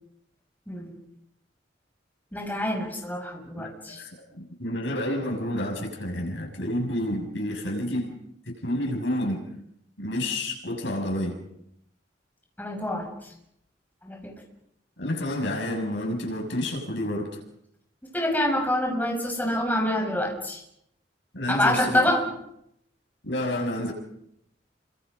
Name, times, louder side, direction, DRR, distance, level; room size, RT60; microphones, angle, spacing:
voice 1, 0.7-1.0 2.3-4.0 12.6-13.1 14.0-14.3 18.0-20.6 21.5-22.2, left 1 dB, 10° left, 0 dB, 6.4 m, -26 dB
voice 2, 3.5-8.2 8.5-9.5 10.0-11.4 15.0-17.4 21.3-22.1 23.2-23.9, left 1 dB, 80° left, 1 dB, 7.0 m, -29 dB
30.0 x 25.5 x 5.4 m, 0.76 s
head